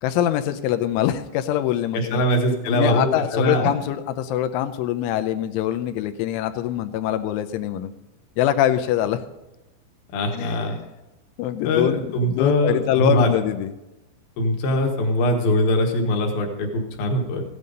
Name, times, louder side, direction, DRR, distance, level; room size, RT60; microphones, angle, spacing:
voice 1, 0.0-2.2 2.7-7.9 8.4-9.2 10.3-10.7 11.4-13.7, left 11 dB, 85° left, 8 dB, 3.1 m, -24 dB
voice 2, 1.9-3.7 10.1-10.8 11.6-13.3 14.4-17.4, left 1 dB, 60° left, 3 dB, 2.8 m, -22 dB
15.0 x 9.8 x 5.2 m, 1.0 s
omnidirectional pair, 5.5 m